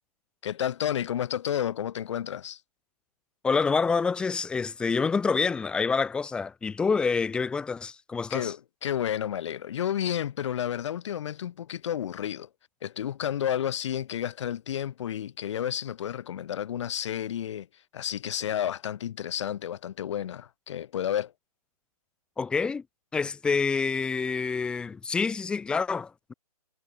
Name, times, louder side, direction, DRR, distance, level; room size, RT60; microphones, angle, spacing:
voice 1, 0.4-2.6 8.3-12.5 12.8-17.7 17.9-21.3, left 10 dB, 45° left, 2.4 m, -31 dB
voice 2, 3.4-8.5 22.4-22.8 23.1-26.3, left 5 dB, 5° left, 0.6 m, -27 dB
hypercardioid pair, 150°, 20 cm